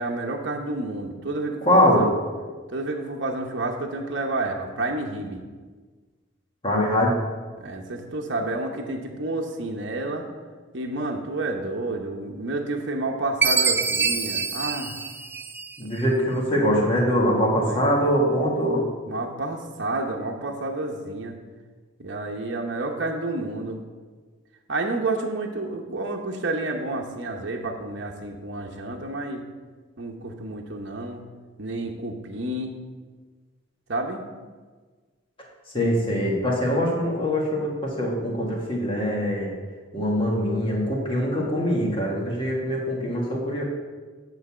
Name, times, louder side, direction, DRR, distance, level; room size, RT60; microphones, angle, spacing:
voice 1, 0.0-2.1 2.7-5.4 7.6-10.3 10.7-15.0 15.8-15.9 17.4-17.9 19.1-21.4 22.0-23.8 24.7-29.4 30.0-31.2 31.6-32.8 33.9-34.2, right 2 dB, 60° right, 1 dB, 0.9 m, -30 dB
voice 2, 1.6-2.1 6.6-7.1 15.8-18.8 35.7-39.5 39.9-43.6, equal, 25° left, -2 dB, 1.8 m, -23 dB
Chime, 13.4-16.0, right 5 dB, 10° right, 0.3 m, -25 dB
9.1 x 4.1 x 7.2 m, 1.4 s
head